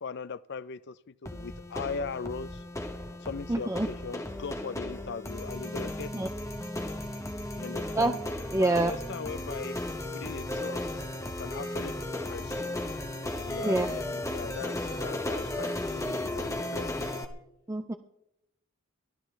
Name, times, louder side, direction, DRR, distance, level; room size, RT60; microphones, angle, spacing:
voice 1, 0.0-2.6 3.2-6.3 7.6-8.2 8.6-9.8 10.1-12.6 13.4-17.3, left 5 dB, 55° left, 0.5 m, -39 dB
sound 1, 1.3-17.3, left 1 dB, 15° left, 1.0 m, -35 dB
voice 2, 3.5-3.9 6.1-6.3 8.0-8.1 8.5-8.9 13.6-13.9 17.7-17.9, right 2 dB, 15° right, 0.4 m, -26 dB
23.0 x 14.5 x 3.3 m
head